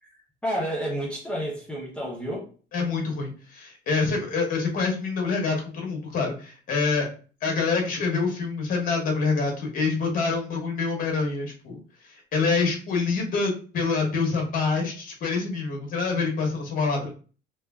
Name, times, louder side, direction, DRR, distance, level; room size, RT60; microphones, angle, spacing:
voice 1, 0.0-2.5, equal, 5° left, -4 dB, 0.6 m, -31 dB
voice 2, 2.7-7.1 7.4-11.8 12.0-17.1, left 4 dB, 45° left, 1 dB, 0.9 m, -26 dB
3.1 x 2.3 x 2.2 m, 0.39 s
cardioid pair, 160°, 19 cm